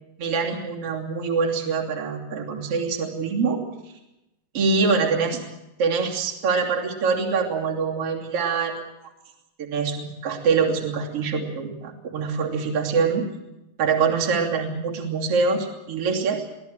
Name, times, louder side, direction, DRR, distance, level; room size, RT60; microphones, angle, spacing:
voice 1, 0.2-3.6 4.5-5.4 5.8-8.9 9.6-13.3 13.8-16.4, right 5 dB, 35° right, -1 dB, 3.5 m, -24 dB
23.0 x 16.5 x 8.9 m, 0.94 s
omnidirectional pair, 5.2 m